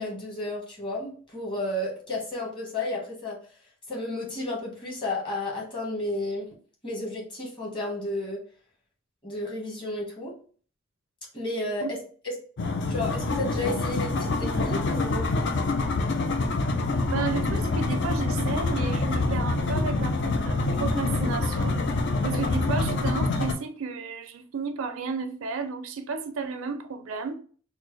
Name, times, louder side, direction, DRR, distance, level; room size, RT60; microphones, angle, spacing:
voice 1, 0.0-3.4 3.9-6.5 6.8-8.4 9.2-10.3 11.3-12.0 12.2-12.4 12.9-15.3, left 2 dB, 25° left, 1.3 m, -32 dB
sound 1, 12.6-23.5, left 2 dB, 60° left, 0.5 m, -26 dB
voice 2, 17.1-21.8 22.2-27.3, right 4 dB, 70° right, 0.4 m, -32 dB
4.0 x 2.1 x 3.1 m
head